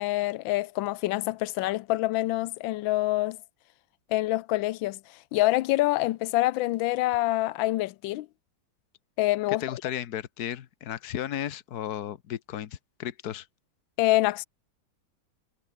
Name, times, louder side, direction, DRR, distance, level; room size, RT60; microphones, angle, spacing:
voice 1, 0.0-3.4 4.1-8.3 9.2-9.6 14.0-14.4, left 17 dB, 80° left, 1.3 m, -26 dB
voice 2, 9.6-13.5, left 11 dB, 55° left, 1.5 m, -34 dB
omnidirectional pair, 2.2 m